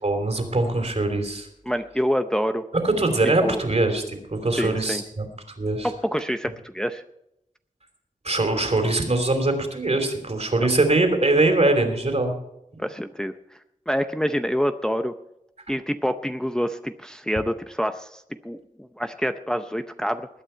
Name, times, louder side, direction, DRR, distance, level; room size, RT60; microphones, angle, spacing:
voice 1, 0.0-1.5 2.8-5.2 5.6-5.9 8.2-12.3, right 2 dB, 50° right, 5 dB, 3.0 m, -22 dB
voice 2, 1.7-2.6 3.4-3.6 4.6-5.0 5.8-7.0 12.8-13.6 13.9-15.1 15.7-20.3, equal, 5° left, 8 dB, 0.6 m, -27 dB
20.5 x 8.9 x 4.5 m, 0.81 s
wide cardioid pair, 60°, 14 cm